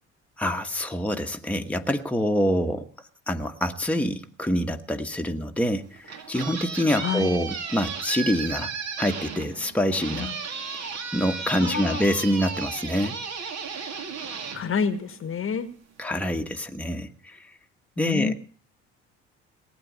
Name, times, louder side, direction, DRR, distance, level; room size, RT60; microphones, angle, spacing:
voice 1, 0.4-2.9 3.3-8.7 9.0-10.3 11.1-13.2 16.0-17.4 18.0-18.3, equal, 5° left, 4 dB, 1.4 m, -26 dB
sound 1, 5.8-15.5, right 5 dB, 50° right, 2.4 m, -35 dB
voice 2, 7.0-7.3 10.1-10.3 11.6-12.0 14.5-15.7 18.0-18.3, left 6 dB, 40° left, 14 dB, 1.3 m, -28 dB
19.0 x 8.9 x 6.9 m, 0.42 s
figure-of-eight pair, 55°, 34 cm